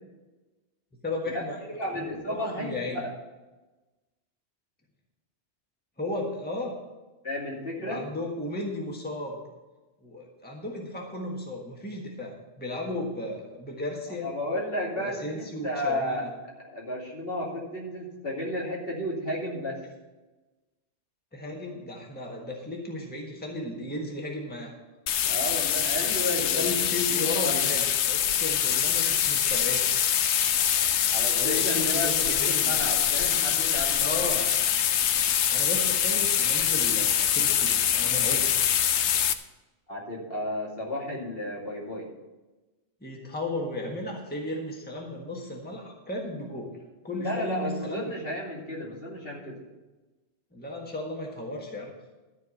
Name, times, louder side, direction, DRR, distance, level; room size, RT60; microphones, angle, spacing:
voice 1, 1.0-1.6 2.3-3.0 6.0-6.7 7.8-9.4 10.0-14.3 14.9-16.3 21.3-24.7 26.5-29.9 31.4-32.8 34.0-34.4 35.5-38.5 43.0-46.7 47.0-48.1 50.5-51.9, left 1 dB, 10° left, -1 dB, 1.5 m, -34 dB
voice 2, 1.7-3.1 7.2-8.0 14.2-16.2 16.7-19.8 25.3-26.7 27.1-27.7 31.1-34.4 39.9-42.1 47.2-49.6, left 1 dB, 60° left, -4 dB, 2.9 m, -33 dB
sound 1, 25.1-39.3, left 9 dB, 80° left, 0.9 m, -24 dB
13.0 x 4.6 x 8.4 m, 1.2 s
omnidirectional pair, 1.1 m